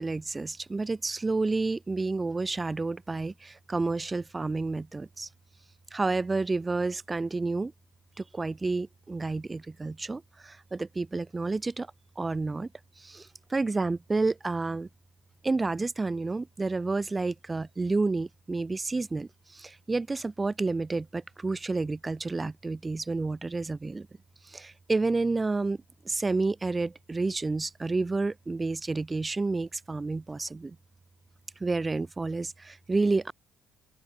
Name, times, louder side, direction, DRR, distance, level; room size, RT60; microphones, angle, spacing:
voice 1, 0.0-5.3 5.9-7.7 8.2-11.9 12.2-12.7 13.0-14.9 15.4-24.1 24.4-25.8 26.1-30.8 31.6-33.3, right 3 dB, 20° right, 3.7 m, -30 dB
open air
cardioid pair, 95°, 0 cm